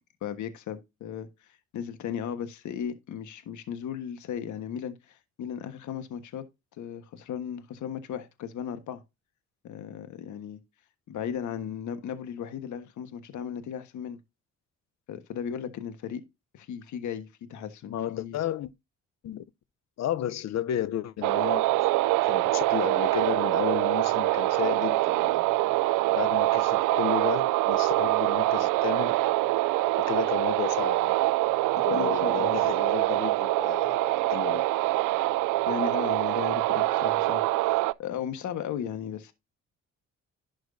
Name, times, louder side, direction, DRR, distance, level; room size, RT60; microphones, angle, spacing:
voice 1, 0.2-6.4 6.8-9.0 9.6-10.6 11.1-14.2 15.1-16.2 16.5-18.4 31.8-32.6 35.7-39.3, left 8 dB, 75° left, 1.4 m, -36 dB
voice 2, 17.9-18.7 19.2-19.4 20.0-21.7 22.2-25.4 26.1-29.1 30.0-31.2 31.8-34.6, left 11 dB, 60° left, 0.8 m, -33 dB
sound 1, 21.2-37.9, right 18 dB, 85° right, 0.5 m, -25 dB
11.5 x 6.2 x 2.7 m
cardioid pair, 90°, 30 cm